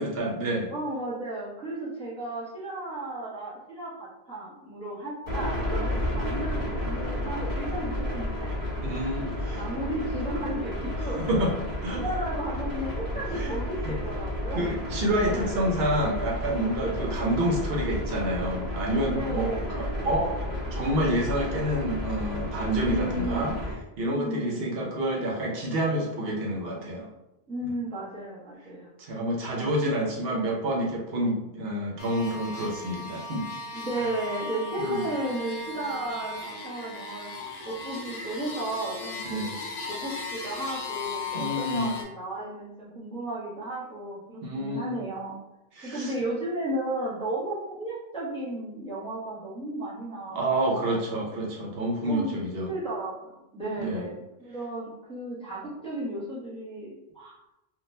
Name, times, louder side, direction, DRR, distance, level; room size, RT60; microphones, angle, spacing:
voice 1, 0.0-0.7 8.8-9.6 11.3-11.5 11.8-12.0 13.3-13.5 13.8-13.9 14.5-19.5 19.8-20.3 20.7-23.5 24.0-27.1 29.0-33.4 34.8-35.1 39.2-39.5 41.3-41.9 44.4-44.9 45.8-46.2 50.3-52.7 53.8-54.1, right 1 dB, 75° right, -1 dB, 0.9 m, -28 dB
voice 2, 0.7-8.6 9.5-11.2 11.9-14.7 15.3-15.7 16.8-17.2 19.1-20.6 22.8-23.6 24.1-24.9 27.5-28.9 29.8-30.0 33.7-37.3 37.6-39.5 39.9-45.3 45.8-51.1 52.1-56.9 57.1-57.3, right 1 dB, 5° left, -7 dB, 0.8 m, -34 dB
sound 1, 5.3-23.7, left 1 dB, 45° right, 1.6 m, -32 dB
sound 2, 32.0-42.0, left 3 dB, 90° left, 0.9 m, -37 dB
3.7 x 2.2 x 2.6 m, 0.91 s
omnidirectional pair, 1.0 m